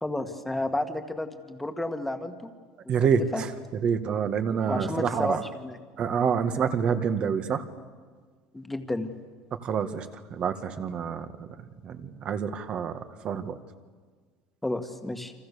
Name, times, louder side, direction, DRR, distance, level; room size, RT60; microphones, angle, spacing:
voice 1, 0.0-2.5 2.8-3.4 4.6-5.8 8.5-9.1 14.6-15.3, left 1 dB, 5° left, 7 dB, 1.9 m, -32 dB
voice 2, 2.9-3.5 3.8-5.4 6.0-7.6 9.6-11.5 11.8-13.0 13.2-13.6, right 7 dB, 40° right, 9 dB, 1.8 m, -27 dB
29.5 x 26.0 x 7.0 m, 1.5 s
cardioid pair, 135°, 3 cm